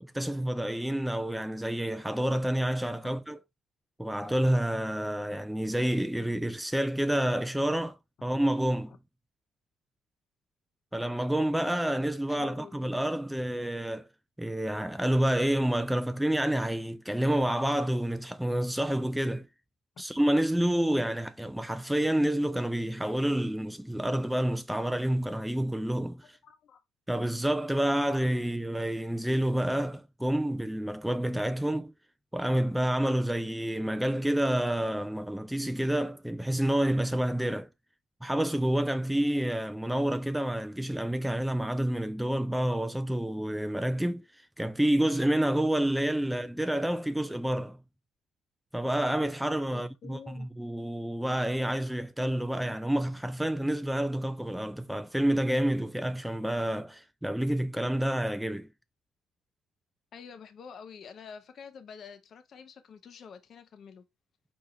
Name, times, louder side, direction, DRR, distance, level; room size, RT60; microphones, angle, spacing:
voice 1, 0.0-3.4 4.0-8.9 10.9-14.1 14.4-19.5 20.0-26.4 27.1-31.9 32.3-37.7 38.2-47.8 48.7-58.7, right 1 dB, 5° right, 0.3 m, -29 dB
voice 2, 12.3-12.8 26.4-26.8 49.7-50.5 60.1-64.0, left 6 dB, 50° left, 0.7 m, -48 dB
4.6 x 3.1 x 3.7 m
supercardioid pair, 80°, 0 cm